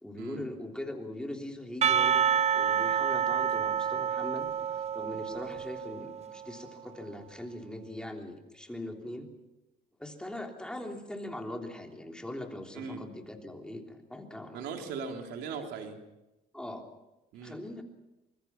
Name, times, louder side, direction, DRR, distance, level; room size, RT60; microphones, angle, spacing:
voice 1, 0.0-2.3 2.5-9.3 10.0-14.9 16.5-16.8 17.4-17.8, left 1 dB, 5° left, 2 dB, 3.3 m, -41 dB
Percussion / Church bell, 1.8-6.4, right 8 dB, 40° right, 0.7 m, -28 dB
voice 2, 14.5-16.0 17.3-17.6, right 5 dB, 85° right, 3 dB, 3.4 m, -39 dB
24.5 x 22.0 x 6.0 m, 0.99 s
cardioid pair, 110°, 17 cm